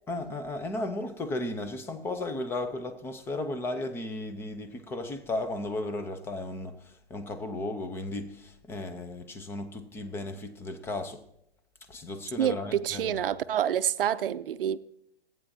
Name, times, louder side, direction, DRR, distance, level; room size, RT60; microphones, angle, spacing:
voice 1, 0.1-11.2 11.9-13.2, left 2 dB, 10° left, 0.6 m, -35 dB
voice 2, 12.4-14.8, right 10 dB, 60° right, 0.6 m, -27 dB
25.5 x 9.1 x 2.7 m
hypercardioid pair, 140°, 31 cm